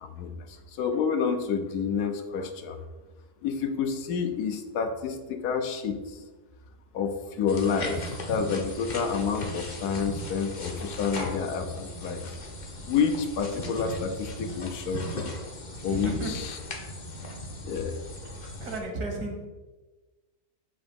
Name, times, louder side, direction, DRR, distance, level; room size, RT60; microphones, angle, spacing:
voice 1, 0.0-2.8 3.4-6.2 6.9-8.0 8.3-12.3 12.9-15.3 15.8-16.5 17.6-18.0, left 6 dB, 80° left, 7 dB, 1.2 m, -29 dB
sound 1, 7.5-18.8, left 1 dB, 45° left, 0.6 m, -38 dB
voice 2, 15.8-16.3 18.6-19.5, right 2 dB, 70° right, 2 dB, 1.6 m, -33 dB
6.9 x 2.7 x 5.2 m, 1.2 s
omnidirectional pair, 1.7 m